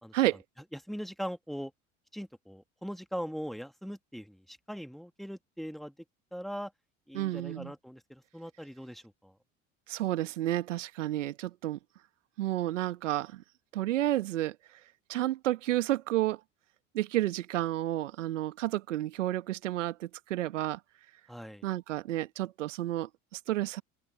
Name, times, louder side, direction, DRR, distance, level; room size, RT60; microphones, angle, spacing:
voice 1, 0.7-1.7 2.1-5.9 6.3-6.7 7.1-9.3 21.3-21.7, equal, ahead, 2.2 m, -40 dB
voice 2, 7.1-7.7 9.9-11.8 12.4-13.4 13.7-14.6 15.1-16.4 16.9-20.8 21.6-23.8, right 14 dB, 75° right, 1.9 m, -31 dB
figure-of-eight pair, 70°, 37 cm